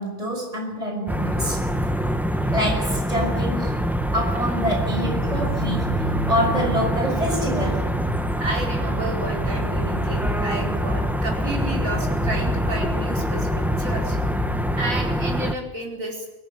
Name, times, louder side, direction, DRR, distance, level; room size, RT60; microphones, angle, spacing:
voice 1, 0.0-1.6 2.5-3.8 4.1-7.9, equal, 25° right, 6.1 m, -26 dB
sound 1, 1.1-15.5, equal, ahead, 1.2 m, -25 dB
sound 2, 4.7-14.8, right 1 dB, 55° right, 3.1 m, -32 dB
voice 2, 8.3-14.2 14.8-16.3, right 1 dB, 85° right, 5.1 m, -31 dB
23.5 x 14.5 x 9.2 m
omnidirectional pair, 1.4 m